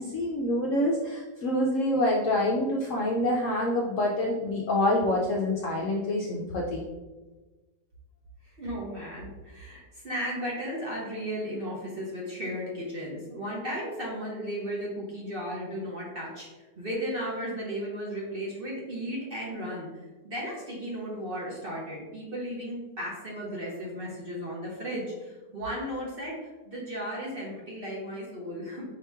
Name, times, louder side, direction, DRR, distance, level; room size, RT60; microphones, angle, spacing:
voice 1, 0.0-6.8, left 1 dB, 70° left, -1 dB, 0.8 m, -26 dB
voice 2, 8.4-16.5 16.8-19.9 20.2-28.8, equal, 40° right, -4 dB, 0.9 m, -35 dB
5.0 x 2.9 x 3.4 m, 1.2 s
omnidirectional pair, 1.8 m